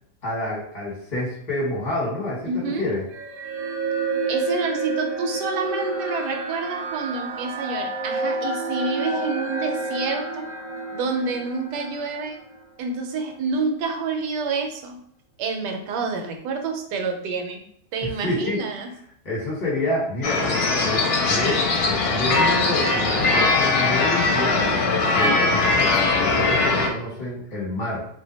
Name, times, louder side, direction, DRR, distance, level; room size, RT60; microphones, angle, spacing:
voice 1, 0.2-3.0 18.0-18.6 19.2-28.1, left 1 dB, 30° left, -5 dB, 1.1 m, -28 dB
voice 2, 2.5-2.8 4.3-10.5 10.9-12.4 12.8-15.0 15.4-17.6 17.9-18.9, right 4 dB, 85° right, 3 dB, 1.2 m, -28 dB
sound 1, 3.1-12.6, right 3 dB, 70° right, 1.0 m, -29 dB
sound 2, 20.2-26.9, left 3 dB, 70° left, 1.0 m, -20 dB
2.8 x 2.2 x 3.9 m, 0.70 s
omnidirectional pair, 1.8 m